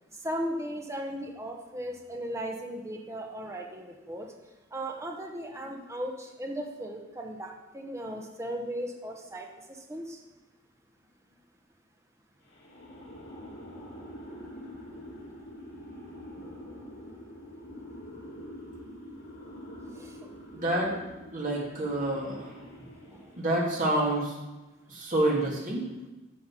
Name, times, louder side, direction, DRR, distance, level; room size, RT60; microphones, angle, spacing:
voice 1, 0.2-4.3 4.7-10.2 19.9-20.2 23.1-23.2, equal, 15° right, 2 dB, 1.0 m, -37 dB
sound 1, 12.5-23.6, equal, 65° left, 3.0 m, -45 dB
voice 2, 20.5-20.9 21.3-22.5 23.4-24.3 24.9-25.8, right 1 dB, 45° right, -3 dB, 2.7 m, -28 dB
9.7 x 6.4 x 6.0 m, 1.1 s
head